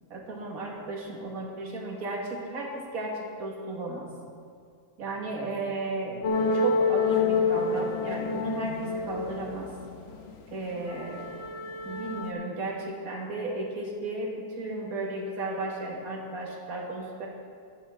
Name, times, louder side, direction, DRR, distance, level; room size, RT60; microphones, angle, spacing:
voice 1, 0.1-4.1 5.0-9.7 10.5-11.3 11.9-17.3, right 2 dB, 60° right, -1 dB, 2.0 m, -34 dB
sound 1, 6.2-10.3 10.8-12.3, left 4 dB, 50° left, 0.8 m, -28 dB
14.0 x 11.0 x 3.6 m, 2.2 s
omnidirectional pair, 1.8 m